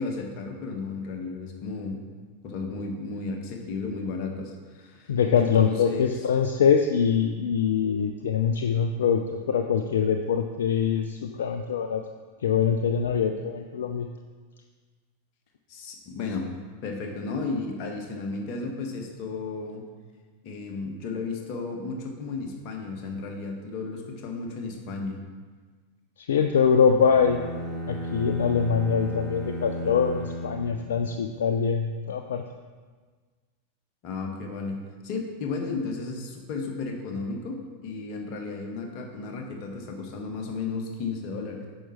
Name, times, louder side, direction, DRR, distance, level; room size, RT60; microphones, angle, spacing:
voice 1, 0.0-2.0 2.4-6.2 15.7-16.5 16.8-19.8 20.4-25.2 34.0-34.8 35.0-41.7, left 4 dB, 40° left, 1 dB, 1.4 m, -33 dB
voice 2, 5.1-12.0 12.4-14.1 26.2-27.4 27.9-32.4, left 7 dB, 60° left, 5 dB, 0.4 m, -23 dB
sound 1, 27.0-31.4, equal, 5° left, 1.7 m, -34 dB
9.0 x 5.8 x 4.3 m, 1.4 s
figure-of-eight pair, 90°, 0 cm